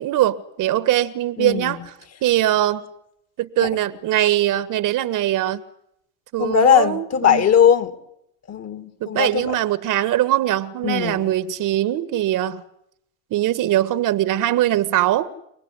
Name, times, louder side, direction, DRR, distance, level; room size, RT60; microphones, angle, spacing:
voice 1, 0.0-1.8 2.2-2.8 3.4-5.6 6.3-7.4 9.0-12.6 13.3-15.3, right 13 dB, 50° right, 1.6 m, -21 dB
voice 2, 1.4-1.8 3.6-3.7 6.4-8.0 8.5-9.6 10.8-11.2, left 8 dB, 35° left, 2.7 m, -19 dB
29.5 x 19.0 x 9.8 m
supercardioid pair, 115°, 42 cm